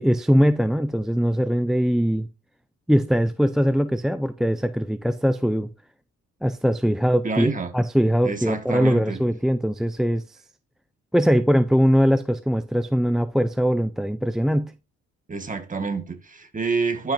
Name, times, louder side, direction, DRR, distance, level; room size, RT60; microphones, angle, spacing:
voice 1, 0.0-2.3 2.9-5.7 6.4-10.4 11.1-14.7, equal, ahead, 0.4 m, -21 dB
voice 2, 7.2-7.7 8.2-9.2 15.3-17.1, right 4 dB, 25° right, 1.7 m, -28 dB
11.5 x 5.8 x 2.6 m
cardioid pair, 90°, 30 cm